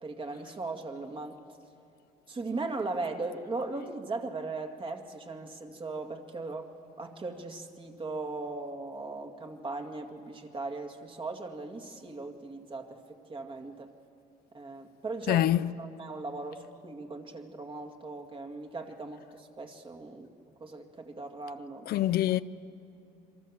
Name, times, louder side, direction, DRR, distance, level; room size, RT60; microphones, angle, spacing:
voice 1, 0.0-1.4 2.3-6.7 7.0-13.0 13.3-13.9 14.5-15.5 15.8-20.3 20.6-21.9, right 3 dB, 30° right, 2.2 m, -38 dB
voice 2, 15.3-15.7 21.9-22.4, left 13 dB, 65° left, 0.5 m, -25 dB
27.0 x 23.5 x 7.4 m
cardioid pair, 110°, 17 cm